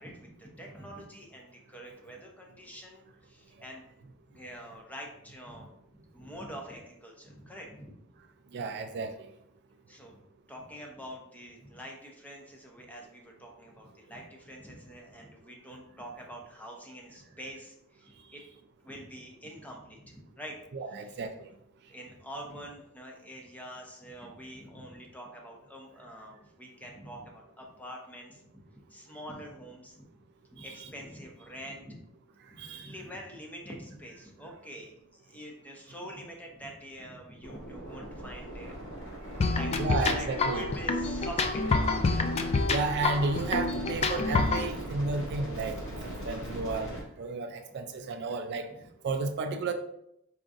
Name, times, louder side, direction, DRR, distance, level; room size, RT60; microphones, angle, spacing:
voice 1, 0.0-3.8 4.3-7.9 9.9-10.2 10.5-18.4 18.8-20.6 20.9-21.2 21.9-30.1 30.5-32.0 32.5-39.0 39.2-42.3 48.7-48.9, equal, 5° left, 0 dB, 0.7 m, -46 dB
voice 2, 8.5-9.3 20.7-21.5 30.6-30.7 32.6-32.9 39.8-40.6 42.7-46.9 47.2-48.7 49.0-49.7, right 3 dB, 50° right, 7 dB, 0.3 m, -32 dB
sound 1, 37.4-47.0, equal, 60° left, 1.7 m, -40 dB
sound 2, 39.4-44.7, left 3 dB, 30° left, 0.3 m, -28 dB
4.7 x 3.8 x 2.6 m, 0.75 s
head